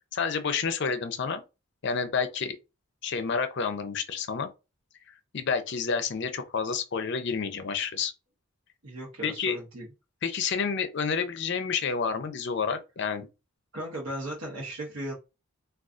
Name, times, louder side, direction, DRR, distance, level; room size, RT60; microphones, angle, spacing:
voice 1, 0.1-1.4 1.8-2.6 3.0-4.5 5.3-8.1 9.2-9.6 10.2-13.3, left 5 dB, 55° left, 0.5 m, -29 dB
voice 2, 8.8-9.9 13.7-15.1, right 1 dB, 70° right, 0.9 m, -36 dB
3.7 x 2.3 x 2.4 m
head